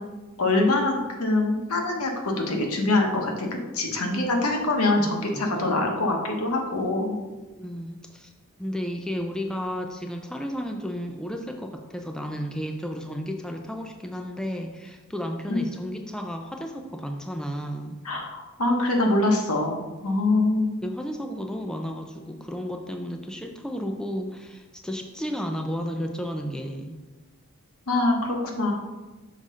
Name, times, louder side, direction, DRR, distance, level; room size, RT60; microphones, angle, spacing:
voice 1, 0.4-3.5 3.7-7.1 15.5-15.7 18.0-19.8 20.0-20.8 27.9-28.7, left 2 dB, 75° left, 1 dB, 1.2 m, -24 dB
voice 2, 5.0-5.7 7.6-8.3 8.6-18.0 20.8-27.0, equal, 5° left, 3 dB, 0.4 m, -33 dB
6.3 x 3.7 x 5.4 m, 1.2 s
head